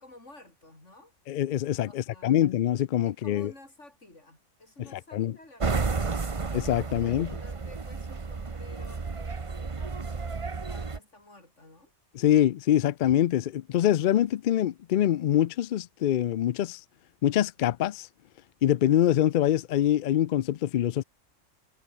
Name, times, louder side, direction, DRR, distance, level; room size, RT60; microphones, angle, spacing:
voice 1, 0.0-1.1 1.9-2.4 3.0-6.3 6.9-11.9, left 2 dB, 60° left, 6.0 m, -52 dB
voice 2, 1.3-3.5 5.1-5.3 6.5-7.3 12.2-16.8 17.2-18.1 18.6-21.0, left 11 dB, 80° left, 0.4 m, -24 dB
sound 1, 5.6-11.0, right 4 dB, 25° right, 0.9 m, -32 dB
omnidirectional pair, 1.4 m